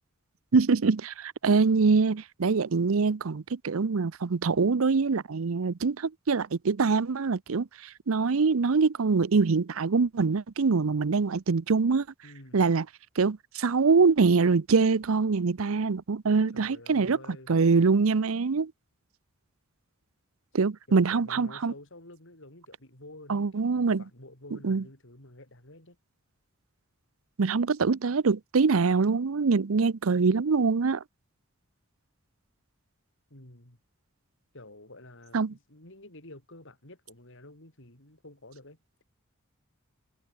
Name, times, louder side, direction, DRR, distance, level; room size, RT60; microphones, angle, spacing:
voice 1, 0.5-7.7 8.1-12.0 12.5-12.8 13.2-17.2 17.5-18.7 20.5-21.7 23.3-24.0 24.6-24.8 27.4-31.0 35.3-35.5, right 4 dB, 75° right, 0.6 m, -24 dB
voice 2, 12.2-12.7 16.5-17.6 20.9-26.0 33.3-33.8 34.5-39.0, left 1 dB, 65° left, 6.4 m, -50 dB
head